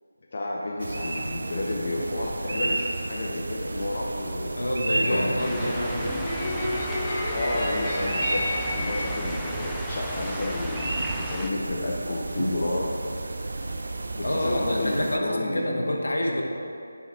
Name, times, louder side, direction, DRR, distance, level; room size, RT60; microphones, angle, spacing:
voice 1, 0.3-4.5 5.0-5.4 7.3-12.9 14.3-15.9, left 2 dB, 45° left, -3 dB, 0.7 m, -31 dB
sound 1, 0.8-15.2, right 2 dB, 60° right, 0.4 m, -32 dB
voice 2, 4.5-6.2 14.2-16.4, left 1 dB, 75° left, 0 dB, 1.0 m, -28 dB
sound 2, 4.9-10.0, left 1 dB, 20° left, 1.4 m, -31 dB
sound 3, 5.4-11.5, equal, ahead, 0.3 m, -37 dB
6.9 x 4.7 x 4.1 m, 2.6 s
figure-of-eight pair, 160°, 0 cm